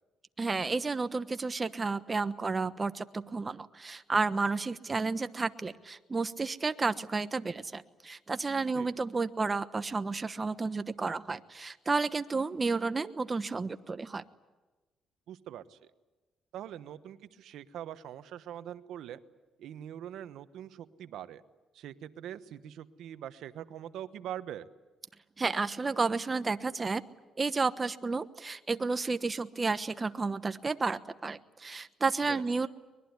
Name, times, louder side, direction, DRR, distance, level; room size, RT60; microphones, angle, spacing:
voice 1, 0.4-14.2 25.4-27.0 27.4-32.7, right 4 dB, 30° right, 11 dB, 1.1 m, -31 dB
voice 2, 15.3-15.8 16.5-19.2 19.6-21.4 21.7-24.7 32.3-32.4, right 10 dB, 80° right, 12 dB, 1.1 m, -43 dB
23.5 x 21.0 x 9.7 m, 1.2 s
cardioid pair, 90°, 0 cm